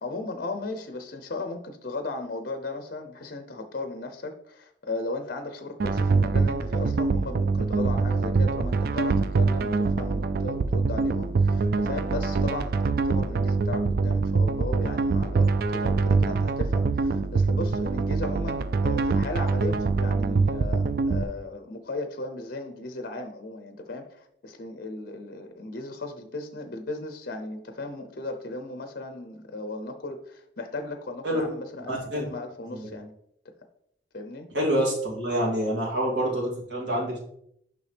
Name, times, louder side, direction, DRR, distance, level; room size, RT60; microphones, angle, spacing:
voice 1, 0.0-33.1 34.1-34.5, left 2 dB, 55° left, 6 dB, 0.7 m, -36 dB
sound 1, 5.8-21.2, right 4 dB, 55° right, 0.3 m, -24 dB
voice 2, 31.9-32.2 32.7-32.9 34.5-37.2, equal, 75° right, -4 dB, 2.9 m, -27 dB
6.9 x 5.6 x 3.4 m, 0.72 s
head